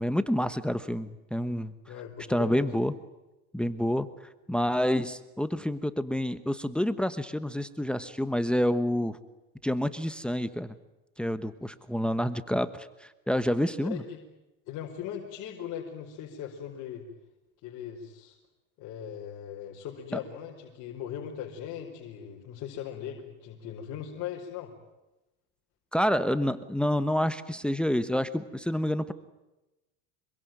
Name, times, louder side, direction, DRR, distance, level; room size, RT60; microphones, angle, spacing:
voice 1, 0.0-1.7 2.3-2.9 3.5-4.1 4.5-9.2 9.6-10.8 11.2-14.0 25.9-29.1, equal, 5° left, 13 dB, 1.2 m, -28 dB
voice 2, 1.8-2.7 13.8-14.2 14.7-17.1 17.6-18.4 18.8-24.7, left 9 dB, 55° left, -1 dB, 5.0 m, -39 dB
26.5 x 23.5 x 9.4 m, 1.0 s
supercardioid pair, 125°, 36 cm